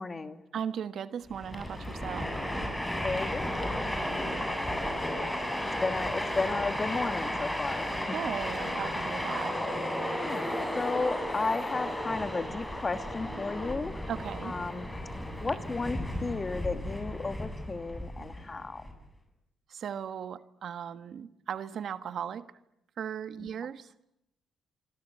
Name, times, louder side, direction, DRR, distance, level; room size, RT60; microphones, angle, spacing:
voice 1, 0.0-0.4 3.0-3.9 5.8-8.2 10.2-10.5 10.7-14.0 14.4-14.9 15.4-18.8 23.4-23.5, left 3 dB, 30° left, 7 dB, 2.6 m, -33 dB
voice 2, 0.5-2.3 8.1-9.6 14.1-14.6 19.7-22.5 23.0-23.9, right 8 dB, 60° right, 11 dB, 1.3 m, -37 dB
Train, 1.3-18.9, left 1 dB, 5° left, 7.8 m, -34 dB
26.5 x 24.5 x 8.5 m, 0.83 s
cardioid pair, 90°, 0 cm